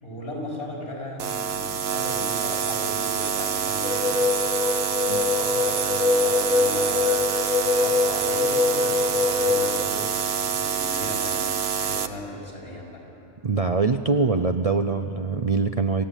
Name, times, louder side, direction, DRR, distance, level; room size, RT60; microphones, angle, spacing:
voice 1, 0.0-4.2 4.7-10.2 10.5-13.0, left 1 dB, 65° left, -3 dB, 5.5 m, -37 dB
sound 1, 1.2-12.1, right 7 dB, 60° right, 1.0 m, -26 dB
sound 2, 3.8-9.8, left 4 dB, 35° left, 0.8 m, -24 dB
voice 2, 13.4-16.0, right 4 dB, 45° right, 7 dB, 0.5 m, -23 dB
27.5 x 15.5 x 9.1 m, 3.0 s
omnidirectional pair, 1.2 m